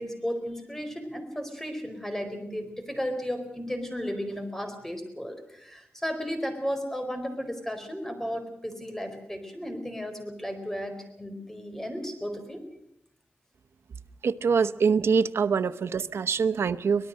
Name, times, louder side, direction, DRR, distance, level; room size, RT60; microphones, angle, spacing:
voice 1, 0.0-12.6, equal, 10° left, 7 dB, 4.6 m, -34 dB
voice 2, 14.2-17.1, right 5 dB, 85° right, 11 dB, 0.9 m, -24 dB
25.0 x 19.0 x 6.5 m, 0.74 s
wide cardioid pair, 100°, 4 cm